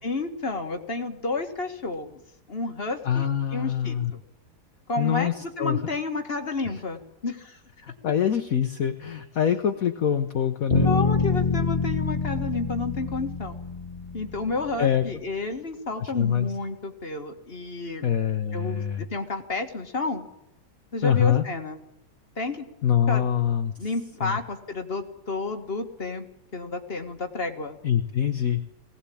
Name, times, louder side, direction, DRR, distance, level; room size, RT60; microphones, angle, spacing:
voice 1, 0.0-2.2 2.5-4.0 4.9-7.6 10.8-13.6 14.1-18.1 18.5-20.3 20.9-21.8 22.4-22.7 23.1-23.3 23.8-26.3 26.5-27.8, left 3 dB, 35° left, 5 dB, 1.8 m, -31 dB
voice 2, 3.0-4.1 5.0-5.8 7.8-10.9 14.8-15.0 16.0-16.5 18.0-19.0 21.0-21.4 22.8-23.7 24.2-24.4 27.8-28.6, left 9 dB, 55° left, 6 dB, 1.3 m, -24 dB
sound 1, 10.7-14.7, left 3 dB, 15° left, 3.0 m, -26 dB
20.5 x 17.5 x 8.5 m, 0.84 s
omnidirectional pair, 1.9 m